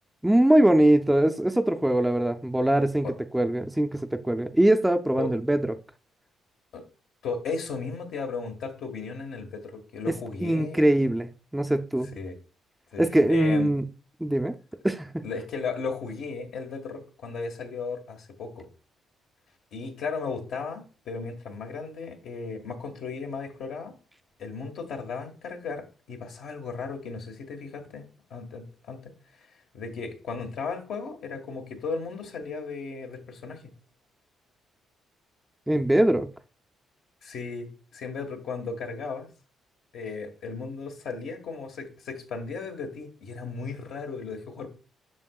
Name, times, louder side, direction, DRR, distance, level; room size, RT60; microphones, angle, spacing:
voice 1, 0.2-5.7 10.4-12.1 13.0-13.8 14.2-14.5 14.8-15.3 35.7-36.3, right 1 dB, 5° right, 0.5 m, -22 dB
voice 2, 7.2-10.8 12.1-12.4 12.9-13.0 13.3-13.7 15.2-18.7 19.7-24.0 24.4-29.1 29.7-33.7 37.2-39.3 39.9-44.7, left 4 dB, 75° left, 1.5 m, -35 dB
7.3 x 5.9 x 2.3 m
cardioid pair, 90°, 0 cm